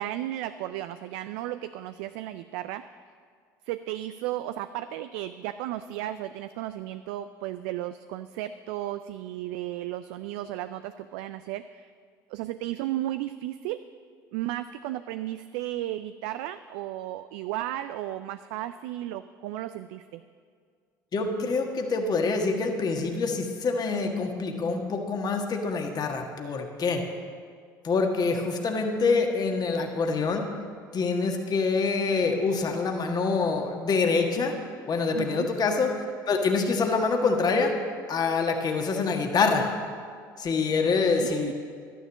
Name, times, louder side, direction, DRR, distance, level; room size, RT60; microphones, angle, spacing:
voice 1, 0.0-2.8 3.7-11.9 12.3-13.8 14.3-20.2 35.1-35.5 41.1-41.5, right 13 dB, 70° right, 11 dB, 0.4 m, -34 dB
voice 2, 21.1-27.0 27.8-30.4 30.9-34.5 34.9-35.9 36.3-37.7 38.1-39.7 40.4-41.5, left 4 dB, 40° left, 3 dB, 1.6 m, -26 dB
12.0 x 10.0 x 7.1 m, 2.1 s
hypercardioid pair, 65°, 10 cm